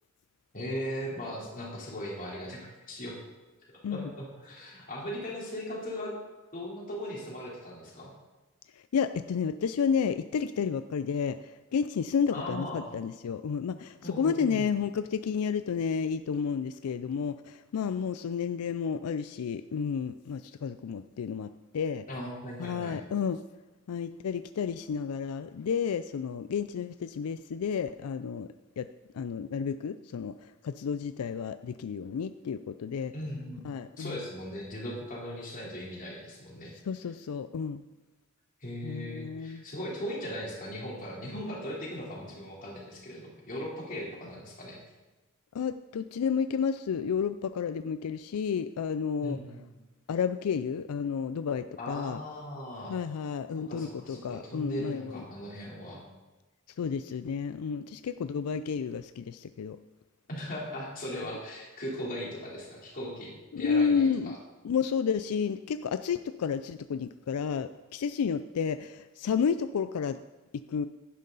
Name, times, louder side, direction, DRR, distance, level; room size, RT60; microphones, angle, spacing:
voice 1, 0.5-3.2 3.9-6.1 6.5-8.1 12.3-12.9 14.0-14.7 22.1-23.0 33.1-36.7 38.6-44.8 49.2-49.7 51.8-53.0 53.7-56.0 60.3-64.4, equal, 40° left, -4 dB, 3.4 m, -38 dB
voice 2, 8.9-21.5 21.7-22.0 22.6-23.4 23.9-28.5 28.8-28.9 29.1-30.3 30.6-33.1 33.6-34.2 36.8-37.8 38.8-39.6 45.5-49.4 50.1-52.2 52.9-55.2 56.8-59.8 63.5-64.4 64.6-70.2 70.5-70.8, left 6 dB, 90° left, 11 dB, 0.4 m, -31 dB
11.0 x 11.0 x 4.0 m, 1.1 s
head